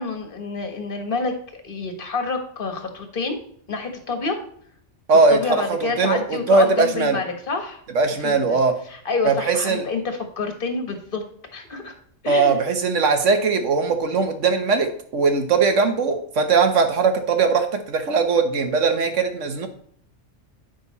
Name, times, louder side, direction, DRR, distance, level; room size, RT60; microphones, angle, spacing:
voice 1, 0.0-3.4 3.7-4.4 5.3-7.8 8.2-8.6 8.9-11.2 11.5-11.9 12.2-12.6, left 3 dB, 45° left, 5 dB, 1.5 m, -28 dB
voice 2, 5.1-7.2 7.9-8.7 9.2-9.8 12.3-19.7, right 4 dB, 75° right, 7 dB, 1.5 m, -20 dB
9.3 x 6.3 x 4.1 m, 0.64 s
omnidirectional pair, 1.3 m